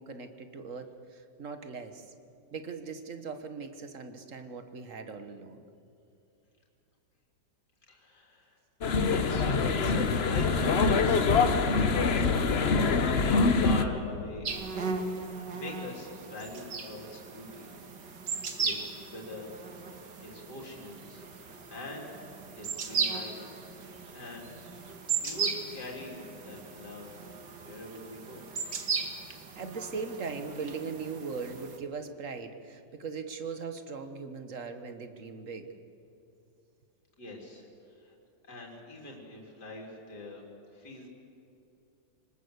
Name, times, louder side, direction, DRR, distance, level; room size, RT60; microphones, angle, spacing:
voice 1, 0.0-2.1 2.5-5.6 25.0-25.1 29.3-35.7, right 5 dB, 50° right, 8 dB, 1.7 m, -39 dB
voice 2, 7.9-8.6 9.0-12.6 13.0-14.9 15.2-17.7 18.6-19.5 20.0-22.2 22.5-24.5 25.2-27.2 27.6-28.4 37.2-38.2 38.4-40.4 40.7-41.1, left 2 dB, 65° left, -1 dB, 4.3 m, -43 dB
sound 1, 8.8-13.8, left 4 dB, 40° left, 1.1 m, -24 dB
sound 2, 14.4-31.8, right 5 dB, 75° right, 2.4 m, -37 dB
25.0 x 19.5 x 8.2 m, 2.7 s
omnidirectional pair, 1.9 m